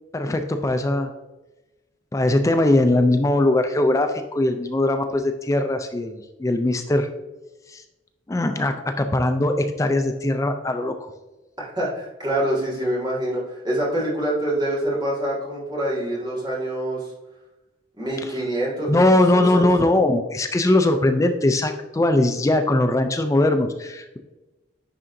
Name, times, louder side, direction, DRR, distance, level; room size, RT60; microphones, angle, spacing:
voice 1, 0.1-1.1 2.1-7.1 7.7-7.8 8.3-11.1 18.9-24.2, left 1 dB, 15° left, 6 dB, 0.3 m, -20 dB
voice 2, 11.6-17.1 18.0-19.4 19.8-19.9, right 1 dB, 20° right, -7 dB, 1.8 m, -26 dB
10.0 x 3.7 x 2.6 m, 1.1 s
head